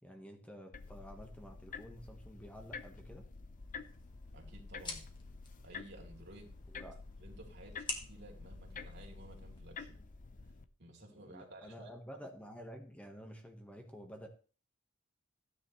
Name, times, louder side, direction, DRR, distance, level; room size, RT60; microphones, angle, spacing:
voice 1, 0.0-3.3 6.7-7.0 11.1-14.3, equal, 5° left, 3 dB, 1.4 m, -51 dB
sound 1, 0.7-10.6, left 4 dB, 40° left, 0.8 m, -49 dB
sound 2, 3.6-9.6, left 3 dB, 25° left, 2.0 m, -49 dB
voice 2, 4.3-5.0 5.6-6.6 7.2-10.0 10.8-11.9, right 1 dB, 60° right, 1 dB, 3.3 m, -54 dB
15.0 x 9.9 x 3.2 m, 0.39 s
head